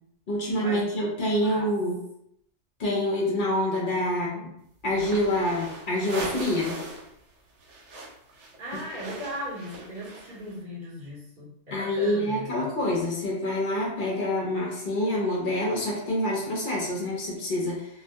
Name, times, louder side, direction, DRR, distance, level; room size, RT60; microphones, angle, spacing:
voice 1, 0.3-2.0 2.8-4.3 4.8-6.8 8.7-8.8 11.7-17.9, left 1 dB, 55° left, -2 dB, 0.7 m, -26 dB
voice 2, 3.9-4.5 8.6-12.7, equal, 45° right, -7 dB, 0.8 m, -38 dB
sound 1, 4.9-7.1 7.4-10.5, right 2 dB, 85° right, 1.0 m, -39 dB
2.2 x 2.1 x 2.7 m, 0.74 s
omnidirectional pair, 1.2 m